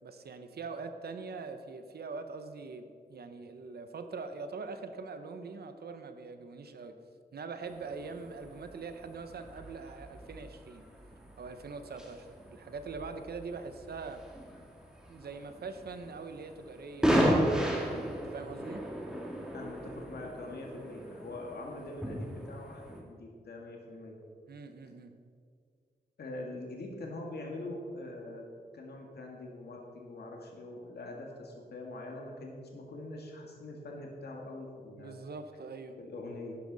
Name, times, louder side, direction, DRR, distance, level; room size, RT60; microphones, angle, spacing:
voice 1, 0.0-7.0 7.3-10.8 11.4-14.2 15.1-18.8 24.5-25.2 35.0-36.0, right 4 dB, 70° right, 8 dB, 0.8 m, -43 dB
sound 1, 7.6-23.0, equal, 5° right, 1.8 m, -35 dB
voice 2, 19.5-24.2 26.2-28.5 28.7-35.2 36.0-36.6, left 2 dB, 75° left, 0 dB, 1.7 m, -43 dB
11.5 x 11.0 x 4.0 m, 2.2 s
wide cardioid pair, 140°, 17 cm